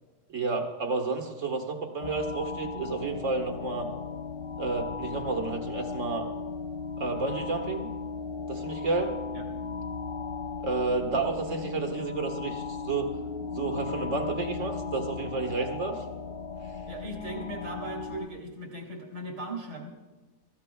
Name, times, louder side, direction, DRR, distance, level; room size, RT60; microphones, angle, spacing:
voice 1, 0.3-3.9 4.6-6.3 7.0-7.9 8.5-9.2 10.6-13.1 13.5-16.0, right 3 dB, 45° right, 4 dB, 1.8 m, -31 dB
sound 1, 2.0-18.3, left 5 dB, 55° left, 0.6 m, -36 dB
voice 2, 16.9-19.9, right 1 dB, 80° right, 0 dB, 3.2 m, -38 dB
26.0 x 14.5 x 2.3 m, 1.2 s
omnidirectional pair, 1.8 m